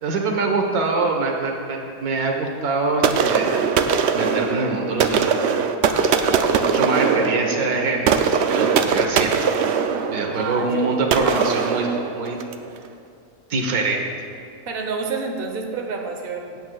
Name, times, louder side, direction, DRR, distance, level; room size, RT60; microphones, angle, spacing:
voice 1, 0.0-3.7 4.1-5.6 5.8-6.2 6.5-8.1 8.5-9.3 10.1-11.9 12.2-12.4 13.5-14.0, right 3 dB, 90° right, 2 dB, 1.6 m, -24 dB
sound 1, 3.0-12.7, right 6 dB, 65° right, 0.7 m, -21 dB
voice 2, 6.2-6.6 10.3-11.3 14.7-16.6, right 4 dB, 45° right, 2 dB, 1.0 m, -29 dB
16.0 x 8.7 x 2.3 m, 2.4 s
omnidirectional pair, 1.5 m